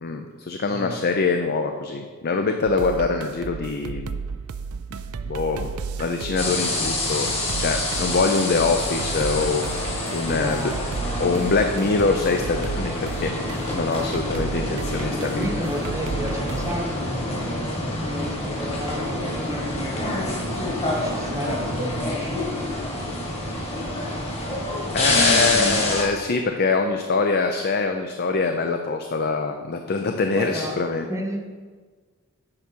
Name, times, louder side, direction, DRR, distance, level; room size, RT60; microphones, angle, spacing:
voice 1, 0.0-4.2 5.3-5.7 6.0-7.3 7.6-9.7 10.1-10.7 11.2-15.5 24.9-31.1, left 4 dB, 50° left, 5 dB, 0.5 m, -24 dB
sound 1, 2.7-16.7, right 5 dB, 85° right, 0.4 m, -34 dB
sound 2, 6.4-26.0, left 1 dB, 30° left, 1.6 m, -27 dB
voice 2, 10.3-11.5 15.1-22.6 25.0-26.0 30.3-30.8 31.0-31.4, equal, 15° right, 1 dB, 0.9 m, -33 dB
8.7 x 6.2 x 4.5 m, 1.5 s
head